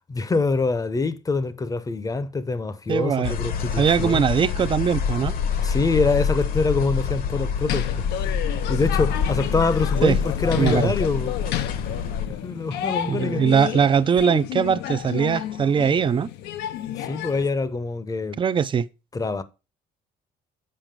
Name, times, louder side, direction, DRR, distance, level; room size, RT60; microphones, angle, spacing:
voice 1, 0.1-4.2 5.6-7.9 8.7-11.4 12.4-13.4 16.9-18.4 19.1-19.4, left 3 dB, 20° left, 0.7 m, -25 dB
voice 2, 2.9-3.3 3.8-5.3 10.0-10.2 10.6-10.9 13.1-16.3 18.4-18.9, right 7 dB, 30° right, 0.5 m, -21 dB
sound 1, 3.2-12.3, left 6 dB, 60° left, 1.1 m, -26 dB
sound 2, 7.6-17.5, left 12 dB, 85° left, 0.7 m, -31 dB
7.7 x 4.9 x 5.1 m
cardioid pair, 110°, 17 cm